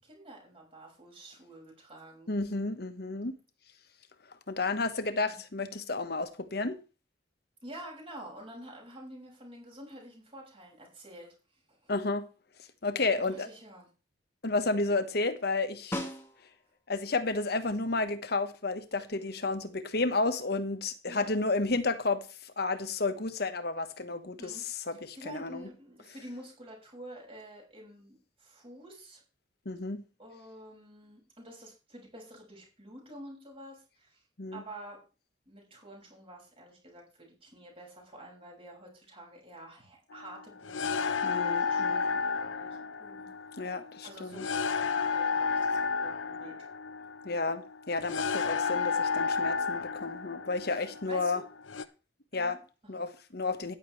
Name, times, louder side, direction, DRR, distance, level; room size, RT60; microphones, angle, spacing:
voice 1, 0.0-2.3 5.3-5.4 7.6-11.9 13.3-13.9 21.1-21.4 24.4-24.6 25.1-29.2 30.2-34.2 34.5-35.0 35.5-46.7 50.6-51.4 52.3-53.0, right 1 dB, 30° right, 6.1 m, -49 dB
voice 2, 2.3-3.3 4.5-6.8 11.9-12.3 12.8-13.5 14.4-16.0 16.9-25.7 29.6-30.0 34.4-34.6 41.2-42.0 43.6-44.5 47.2-51.4 52.3-52.6 52.9-53.7, left 3 dB, 55° left, 1.3 m, -31 dB
Snare drum, 15.9-16.8 21.3-21.4, left 1 dB, 15° left, 1.9 m, -38 dB
sound 1, 40.1-51.8, left 5 dB, 85° left, 0.8 m, -32 dB
14.0 x 10.5 x 3.3 m
head